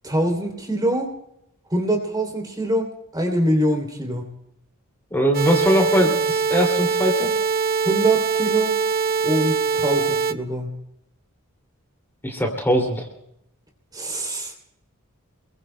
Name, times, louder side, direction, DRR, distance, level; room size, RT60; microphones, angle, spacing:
voice 1, 0.0-1.1 1.7-4.3 7.8-8.8 9.2-10.7 13.9-14.6, right 1 dB, 20° right, 2 dB, 2.9 m, -24 dB
voice 2, 5.1-7.3 12.2-13.1, equal, 10° left, 1 dB, 2.5 m, -21 dB
sound 1, 5.3-10.3, right 5 dB, 45° right, 0.6 m, -22 dB
27.5 x 22.0 x 2.2 m, 0.77 s
head